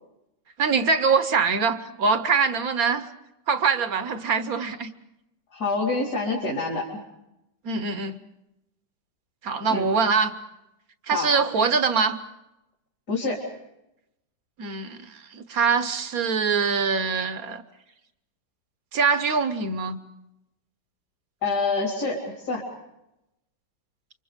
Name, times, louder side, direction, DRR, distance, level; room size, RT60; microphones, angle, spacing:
voice 1, 0.6-3.1 3.5-4.9 7.6-8.2 9.4-10.3 11.1-12.2 14.6-17.6 18.9-20.0, right 5 dB, 60° right, 11 dB, 1.4 m, -23 dB
voice 2, 5.5-6.9 9.7-9.9 11.1-11.3 13.1-13.5 21.4-22.6, left 3 dB, 60° left, -2 dB, 4.2 m, -26 dB
28.5 x 25.0 x 5.1 m, 0.89 s
omnidirectional pair, 1.9 m